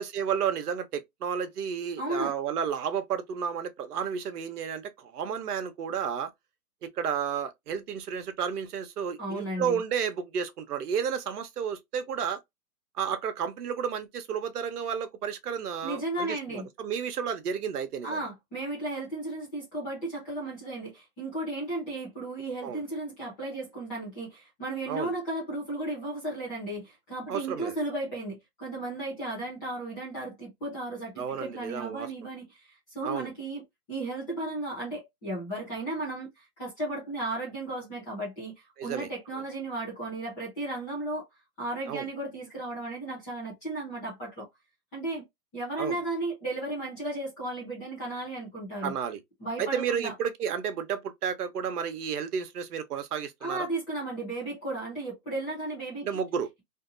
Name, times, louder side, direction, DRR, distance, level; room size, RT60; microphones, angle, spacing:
voice 1, 0.0-6.3 6.8-12.4 13.0-18.2 22.6-22.8 24.9-25.1 27.3-27.7 31.2-32.1 33.0-33.3 38.8-39.1 39.3-39.4 41.9-42.1 45.8-46.0 48.8-49.2 49.6-53.7 56.0-56.5, right 7 dB, 70° right, 0.9 m, -32 dB
voice 2, 2.0-2.3 9.2-9.8 15.8-16.7 18.0-33.6 33.9-41.3 41.6-44.5 44.9-45.2 45.5-48.9 49.4-50.1 53.4-56.2, right 2 dB, 10° left, 0.5 m, -35 dB
2.7 x 2.6 x 2.4 m
hypercardioid pair, 145°, 48 cm